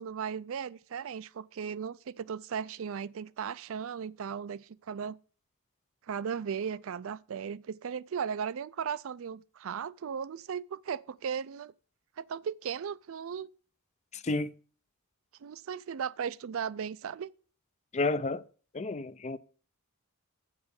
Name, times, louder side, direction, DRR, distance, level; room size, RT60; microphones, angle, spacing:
voice 1, 0.0-5.2 6.1-11.7 12.2-13.5 15.4-17.3, right 7 dB, 65° right, 0.4 m, -36 dB
voice 2, 14.1-14.5 17.9-18.4 18.7-19.4, left 3 dB, 30° left, 0.5 m, -31 dB
8.3 x 7.2 x 6.4 m
head